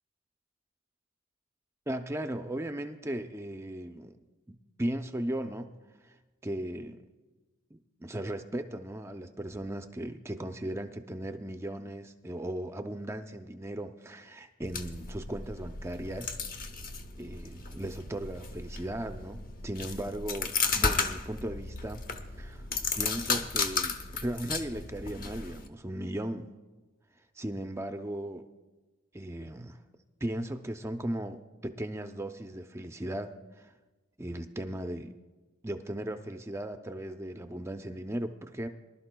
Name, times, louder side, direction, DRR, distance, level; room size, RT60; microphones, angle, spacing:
voice 1, 1.9-4.1 4.5-5.7 6.0-6.1 6.4-7.0 7.7-16.3 17.2-22.0 22.4-22.6 23.0-26.5 27.4-28.5 29.1-29.8 30.2-33.7 34.2-35.1 35.6-38.7, right 1 dB, 15° right, 7 dB, 0.5 m, -37 dB
sound 1, 14.6-25.7, left 4 dB, 45° left, 0.8 m, -34 dB
24.0 x 12.0 x 2.2 m, 1.2 s
head